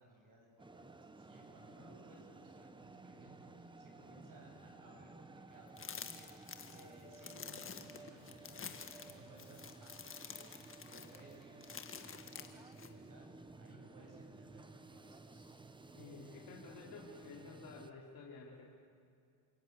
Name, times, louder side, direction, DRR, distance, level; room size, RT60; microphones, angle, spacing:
voice 1, 0.0-8.7 9.0-10.5 10.8-15.6, right 1 dB, 40° right, 1 dB, 7.9 m, -61 dB
sound 1, 0.6-17.9, right 3 dB, 10° right, 0.9 m, -55 dB
sound 2, 5.8-12.9, left 6 dB, 25° left, 1.8 m, -49 dB
voice 2, 15.9-18.7, left 4 dB, 45° left, -3 dB, 3.3 m, -52 dB
28.5 x 17.5 x 8.2 m, 2.3 s
cardioid pair, 115°, 49 cm